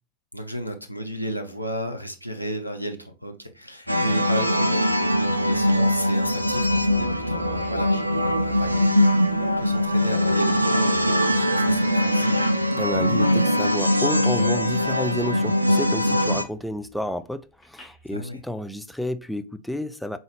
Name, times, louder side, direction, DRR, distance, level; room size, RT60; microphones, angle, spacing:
voice 1, 0.3-12.3 18.1-18.4, equal, 90° left, 0.6 m, -33 dB
sound 1, 3.8-11.3 11.7-12.8 13.1-13.4 13.6-14.5 14.8-15.4 15.7-18.1, left 1 dB, 30° left, 1.7 m, -46 dB
sound 2, 3.9-16.4, equal, 85° right, 0.4 m, -21 dB
voice 2, 12.8-20.2, left 1 dB, ahead, 0.4 m, -31 dB
4.0 x 3.8 x 3.3 m
figure-of-eight pair, 90°, 0 cm